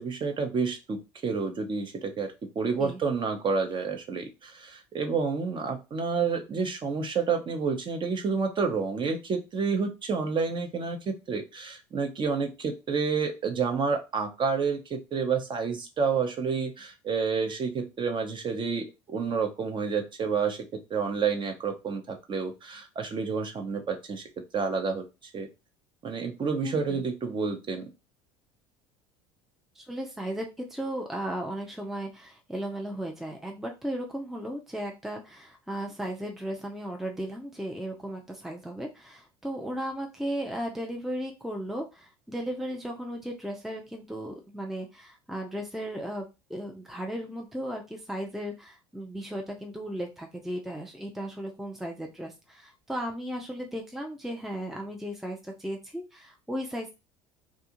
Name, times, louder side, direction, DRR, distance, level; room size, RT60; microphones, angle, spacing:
voice 1, 0.0-24.2 24.5-25.5 26.0-27.9, right 5 dB, 35° right, 5 dB, 0.8 m, -29 dB
voice 2, 26.6-27.0 29.8-46.2 46.5-56.9, equal, ahead, 1 dB, 0.5 m, -36 dB
2.6 x 2.3 x 2.9 m, 0.26 s
hypercardioid pair, 75°, 14 cm